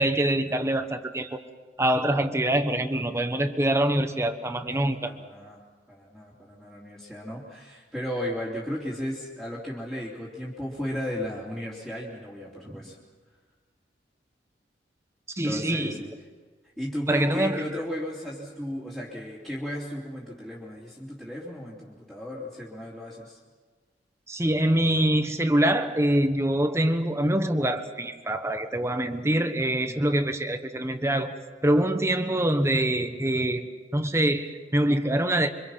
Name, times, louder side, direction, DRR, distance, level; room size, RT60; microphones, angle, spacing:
voice 1, 0.0-1.4 1.8-5.0 12.7-12.8 15.4-15.9 17.1-17.6 24.3-31.4 31.6-33.7 33.9-35.5, right 1 dB, 15° right, 7 dB, 1.2 m, -24 dB
voice 2, 4.6-13.0 15.4-16.1 16.8-23.4 29.9-30.2, left 1 dB, ahead, -6 dB, 3.3 m, -35 dB
27.0 x 25.0 x 5.8 m, 1.4 s
head